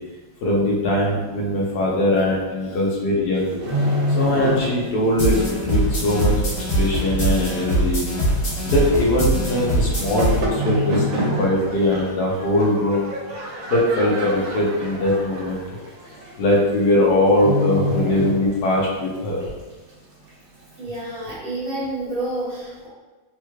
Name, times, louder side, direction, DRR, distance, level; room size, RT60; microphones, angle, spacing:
voice 1, 0.4-3.9 4.1-6.3 6.7-8.0 8.6-13.1 13.7-15.6 16.4-19.4, left 1 dB, 65° left, -3 dB, 1.2 m, -21 dB
sound 1, 3.4-5.1 5.4-5.6 6.2-6.3 7.2-7.3 7.5-7.6 8.4-8.7 9.8-10.2 10.5-12.0 12.4-12.6 13.1-13.6 13.9-14.0 14.3-14.4 14.8-14.9 15.9-16.0 16.2-16.5 16.8-16.9 17.3-19.0 19.3-19.4, left 1 dB, 70° right, 1.4 m, -25 dB
sound 2, 5.2-10.4, right 1 dB, 50° left, 1.8 m, -22 dB
sound 3, 10.0-16.3, right 2 dB, 90° right, 1.5 m, -31 dB
voice 2, 20.8-22.9, right 1 dB, 55° right, -8 dB, 0.6 m, -29 dB
3.7 x 3.0 x 2.3 m, 1.2 s
omnidirectional pair, 2.0 m